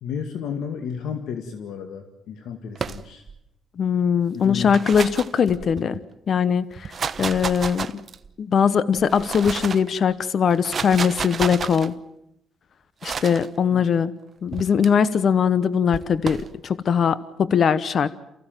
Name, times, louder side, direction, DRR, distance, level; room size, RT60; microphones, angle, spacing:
voice 1, 0.0-3.2 4.3-4.8 13.7-13.9, left 7 dB, 80° left, 6 dB, 2.1 m, -32 dB
sound 1, 2.7-3.4 4.5-6.0 6.7-8.3 9.0-9.9 10.5-11.9 13.0-13.5 14.5-14.9 15.9-16.5, right 6 dB, 45° right, 1.1 m, -31 dB
voice 2, 3.8-6.0 6.3-6.9 7.2-7.9 8.4-11.9 13.0-14.1 14.4-18.1, left 7 dB, 55° left, 16 dB, 1.0 m, -21 dB
28.5 x 15.5 x 9.1 m, 0.80 s
cardioid pair, 90°, 0 cm